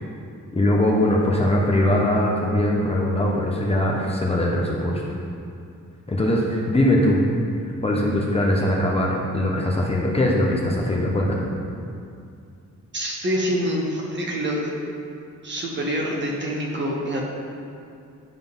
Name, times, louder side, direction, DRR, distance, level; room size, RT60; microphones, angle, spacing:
voice 1, 0.5-5.0 6.1-7.2 7.8-11.4, left 1 dB, 20° left, -3 dB, 0.8 m, -21 dB
voice 2, 12.9-14.7 15.4-17.3, equal, 35° right, -2 dB, 1.3 m, -26 dB
11.0 x 3.8 x 5.3 m, 2.4 s
wide cardioid pair, 165°, 32 cm